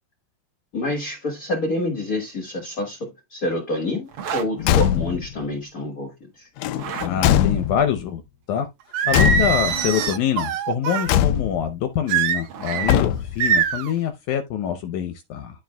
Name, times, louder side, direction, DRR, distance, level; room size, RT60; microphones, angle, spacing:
voice 1, 0.7-6.5, left 1 dB, 40° left, 1.4 m, -28 dB
sound 1, 4.1-4.5 6.6-7.1 9.3-10.1 12.0-13.1, right 7 dB, 55° right, 1.8 m, -33 dB
Car / Truck / Slam, 4.6-5.3 6.6-8.0 9.1-9.9 11.1-11.7 12.8-13.5, left 11 dB, 90° left, 1.5 m, -21 dB
voice 2, 7.0-8.2 8.5-8.7 9.1-15.6, left 9 dB, 75° left, 2.0 m, -25 dB
Singing, 8.9-11.1 12.1-12.9 13.4-13.9, right 7 dB, 80° right, 1.3 m, -23 dB
13.0 x 4.7 x 2.3 m
omnidirectional pair, 3.8 m